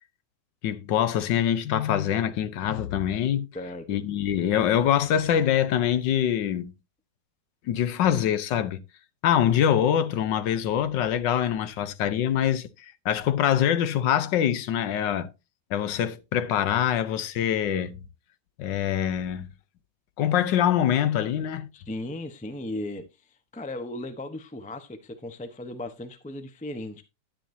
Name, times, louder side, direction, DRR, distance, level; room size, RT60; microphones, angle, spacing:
voice 1, 0.6-3.5 3.9-6.7 7.7-8.8 9.2-15.3 15.7-18.0 18.6-19.5 20.2-21.7, left 10 dB, 70° left, 1.4 m, -24 dB
voice 2, 3.5-4.0 21.7-27.0, left 1 dB, 10° left, 0.5 m, -36 dB
10.0 x 10.0 x 2.7 m
omnidirectional pair, 2.1 m